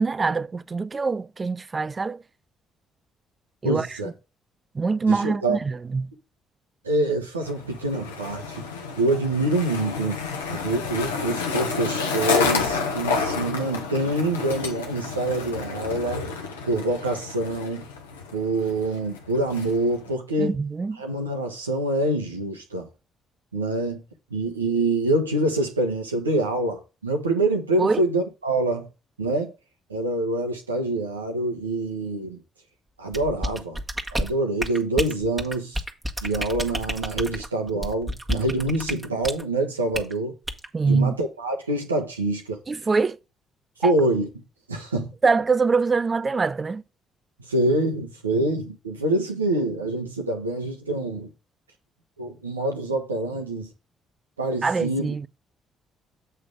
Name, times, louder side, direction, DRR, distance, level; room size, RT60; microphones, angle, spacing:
voice 1, 0.0-2.2 3.6-3.9 4.7-6.1 20.4-21.0 27.8-28.0 40.7-41.2 42.7-43.2 43.8-43.9 45.2-46.8 54.6-55.3, right 4 dB, 30° right, 0.4 m, -24 dB
voice 2, 3.6-4.1 5.1-5.6 6.8-8.6 9.0-10.2 10.5-16.4 16.6-17.9 18.3-20.6 21.0-22.9 23.5-24.0 24.3-28.9 29.2-29.5 29.9-32.4 33.0-33.8 34.1-35.8 36.2-40.4 40.9-42.6 43.8-45.1 47.4-51.3 52.2-53.7 54.4-55.1, right 2 dB, 90° right, 1.0 m, -26 dB
Skateboard, 7.4-20.1, left 5 dB, 85° left, 0.9 m, -30 dB
sound 1, 33.1-39.4 39.9-40.1 40.5-40.7, equal, 15° right, 1.4 m, -30 dB
8.0 x 3.3 x 6.3 m
figure-of-eight pair, 45°, 0 cm